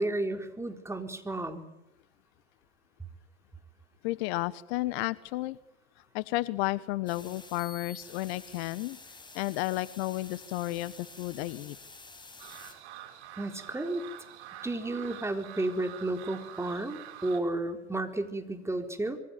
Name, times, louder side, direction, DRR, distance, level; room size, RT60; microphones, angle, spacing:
voice 1, 0.0-1.7 13.4-14.0 14.6-19.2, right 2 dB, 5° right, 6 dB, 4.3 m, -32 dB
voice 2, 4.0-5.6 6.1-9.0 9.3-11.8, left 18 dB, 60° left, 18 dB, 1.2 m, -32 dB
sound 1, 7.1-12.7, left 2 dB, 10° left, 7.0 m, -49 dB
sound 2, 12.4-17.4, right 11 dB, 65° right, 5.7 m, -46 dB
27.0 x 23.5 x 9.4 m, 0.88 s
hypercardioid pair, 95°, 36 cm